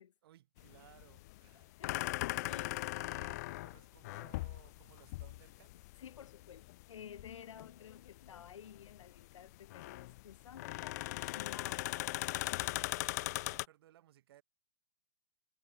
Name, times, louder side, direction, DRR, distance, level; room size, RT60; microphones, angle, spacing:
voice 1, 0.2-1.8 2.3-5.9 10.9-11.4 13.1-14.4, right 13 dB, 50° right, 4.3 m, -63 dB
sound 1, 0.6-13.7, left 19 dB, 35° left, 0.5 m, -40 dB
voice 2, 1.5-2.8 6.0-12.0, left 9 dB, 75° left, 2.3 m, -53 dB
hypercardioid pair, 155°, 16 cm